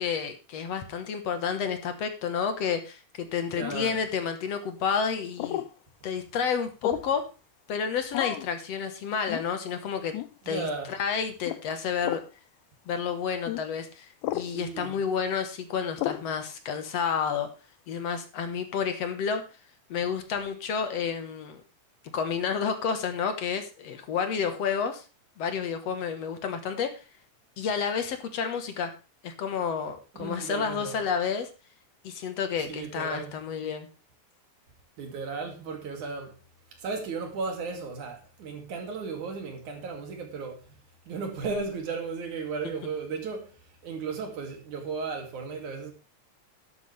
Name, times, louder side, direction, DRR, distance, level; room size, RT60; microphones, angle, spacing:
voice 1, 0.0-5.6 6.0-7.3 7.7-10.2 10.5-12.2 12.9-17.5 17.9-19.4 19.9-21.6 22.1-25.0 25.4-27.0 27.6-28.9 29.2-31.5 32.0-33.9, left 6 dB, 65° left, 2.3 m, -30 dB
voice 2, 3.5-4.0 10.5-10.9 14.5-15.0 30.1-31.0 32.7-33.4 35.0-36.4 36.8-40.7 41.1-45.9, right 4 dB, 80° right, 4.0 m, -35 dB
sound 1, 3.6-4.0 5.4-5.7 6.8-7.2 8.1-8.5 9.3-9.5 10.1-10.3 11.4-11.6 12.0-12.3 13.5-13.6 14.2-14.5 16.0-16.3, left 15 dB, 90° left, 2.2 m, -32 dB
12.0 x 11.5 x 3.3 m
omnidirectional pair, 3.4 m